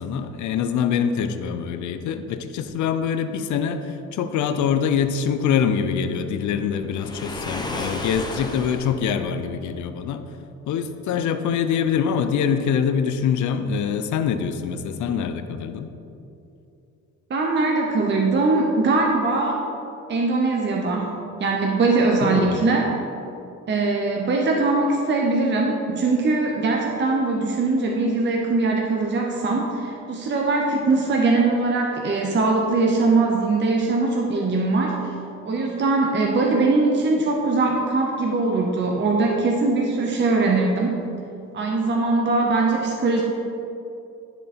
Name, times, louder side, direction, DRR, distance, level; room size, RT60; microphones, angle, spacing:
voice 1, 0.0-10.2 10.7-15.9 22.2-22.7, left 7 dB, 70° left, 9 dB, 0.6 m, -24 dB
Waves surf, 6.9-9.0, left 2 dB, 15° left, 0.8 m, -32 dB
voice 2, 17.3-19.6 20.1-21.1 21.4-22.9 23.7-35.1 35.4-41.0 41.5-43.2, right 3 dB, 40° right, 0 dB, 0.8 m, -21 dB
10.0 x 3.8 x 4.2 m, 2.7 s
cardioid pair, 90°, 30 cm